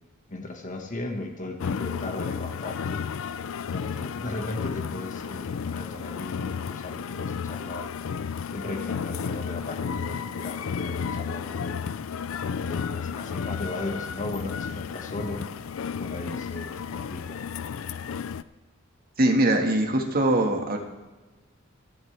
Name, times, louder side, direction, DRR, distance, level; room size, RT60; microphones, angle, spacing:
voice 1, 0.3-3.0 3.7-7.9 8.5-11.8 12.4-15.5 16.0-17.4, left 2 dB, 40° left, 3 dB, 1.5 m, -36 dB
sound 1, 1.6-18.4, left 6 dB, 80° left, 0.4 m, -33 dB
voice 2, 19.2-20.8, right 1 dB, 50° right, 3 dB, 1.6 m, -22 dB
26.5 x 8.8 x 3.3 m, 1.2 s
head